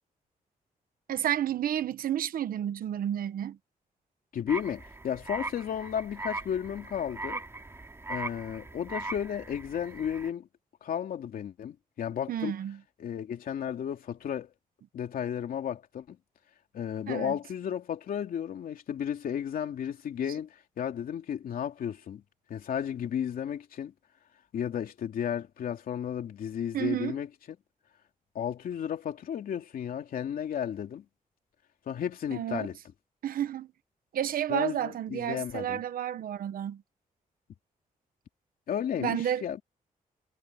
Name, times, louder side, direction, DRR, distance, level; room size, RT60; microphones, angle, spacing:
voice 1, 1.1-3.6 12.3-12.8 17.1-17.4 26.7-27.2 32.3-32.7 33.2-33.7 34.1-36.8 39.0-39.6, right 10 dB, 85° right, 1.1 m, -31 dB
voice 2, 4.3-7.4 8.1-10.5 10.8-12.5 13.0-14.5 14.9-16.2 16.7-22.2 22.5-23.9 24.5-27.3 28.3-31.0 31.9-32.8 34.5-35.8 38.7-39.6, left 9 dB, 80° left, 2.8 m, -33 dB
sound 1, 4.5-10.3, right 2 dB, 20° right, 2.4 m, -40 dB
wide cardioid pair, 145°, 15 cm